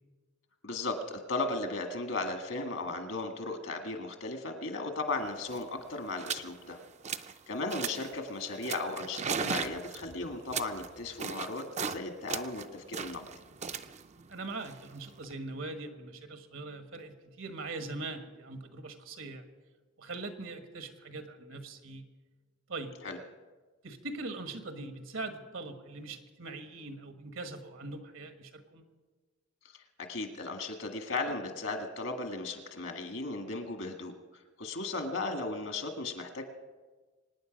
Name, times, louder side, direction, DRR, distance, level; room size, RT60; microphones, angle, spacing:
voice 1, 0.6-6.8 7.5-13.2 23.0-23.2 30.1-34.1 34.6-36.5, left 2 dB, 70° left, 6 dB, 1.8 m, -36 dB
sound 1, 5.1-5.2 5.4-5.7 6.2-6.5 6.8-7.4 7.7-8.1 8.6-12.0 12.3-15.3, right 6 dB, 35° right, 0.5 m, -37 dB
voice 2, 14.3-19.5 20.0-22.0 22.7-23.0 23.8-28.8, right 3 dB, 75° right, 7 dB, 1.5 m, -41 dB
24.5 x 9.6 x 5.2 m, 1.3 s
head